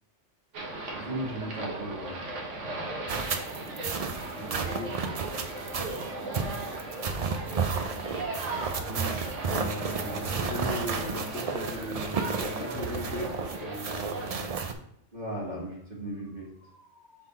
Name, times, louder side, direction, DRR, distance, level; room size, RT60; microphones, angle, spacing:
sound 1, 0.5-14.5, right 2 dB, 75° right, 1.4 m, -37 dB
voice 1, 0.9-2.3 6.3-6.6 15.1-17.2, right 1 dB, 40° right, -5 dB, 1.7 m, -37 dB
sound 2, 3.1-14.7, right 5 dB, 55° right, 0.4 m, -33 dB
voice 2, 4.3-4.9 8.8-13.3 13.6-14.5, left 1 dB, 70° left, -3 dB, 1.1 m, -38 dB
6.0 x 3.7 x 4.2 m, 0.75 s
omnidirectional pair, 1.2 m